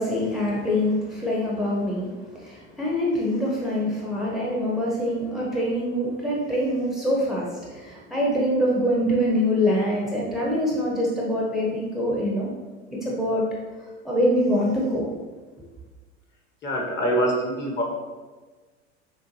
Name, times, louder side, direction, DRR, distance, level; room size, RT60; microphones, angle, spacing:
voice 1, 0.0-12.5 12.9-13.4 14.0-15.1, equal, ahead, -4 dB, 0.9 m, -24 dB
voice 2, 16.6-17.8, right 1 dB, 30° left, 0 dB, 1.3 m, -24 dB
6.8 x 2.4 x 3.0 m, 1.3 s
hypercardioid pair, 75°, 35 cm